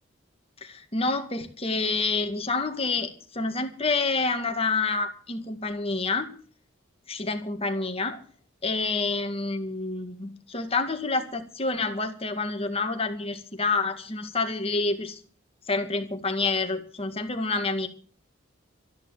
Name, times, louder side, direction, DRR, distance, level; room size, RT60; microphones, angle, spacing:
voice 1, 0.6-6.3 7.1-8.2 8.6-15.2 15.7-17.9, left 3 dB, 30° left, 6 dB, 2.0 m, -28 dB
13.5 x 10.5 x 7.7 m, 0.44 s
head